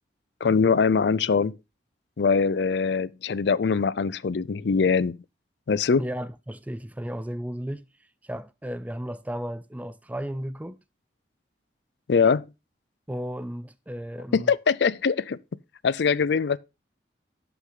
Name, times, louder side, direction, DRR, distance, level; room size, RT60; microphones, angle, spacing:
voice 1, 0.4-1.6 2.2-5.2 5.7-6.1 12.1-12.5 14.3-15.4 15.8-16.6, left 5 dB, 70° left, 0.5 m, -22 dB
voice 2, 6.0-7.8 8.2-10.8 13.1-14.5, equal, 10° right, 0.4 m, -34 dB
11.5 x 6.0 x 3.8 m
head